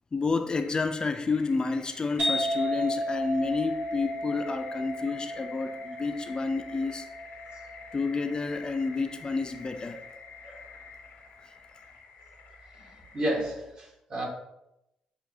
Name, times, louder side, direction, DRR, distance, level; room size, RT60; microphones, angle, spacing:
voice 1, 0.1-7.1 7.9-10.0, left 4 dB, 35° left, 0.3 m, -30 dB
sound 1, 0.6-13.4, left 5 dB, 80° left, 0.5 m, -49 dB
sound 2, 2.2-9.6, equal, 60° right, 1.5 m, -34 dB
voice 2, 13.1-14.3, equal, 45° right, 1.2 m, -32 dB
6.5 x 2.3 x 2.7 m
supercardioid pair, 65°, 2 cm